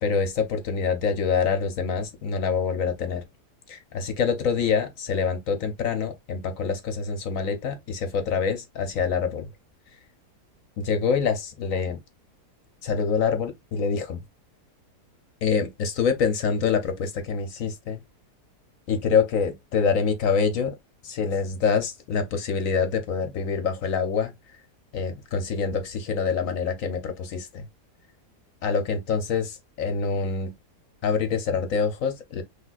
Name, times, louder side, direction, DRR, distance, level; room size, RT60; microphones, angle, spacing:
voice 1, 0.0-3.2 3.7-9.5 10.8-12.0 12.8-14.2 15.4-18.0 18.9-20.8 21.0-24.3 24.9-27.7 28.6-30.5 31.0-32.4, left 5 dB, 65° left, 1.0 m, -26 dB
6.0 x 2.9 x 2.4 m
omnidirectional pair, 1.7 m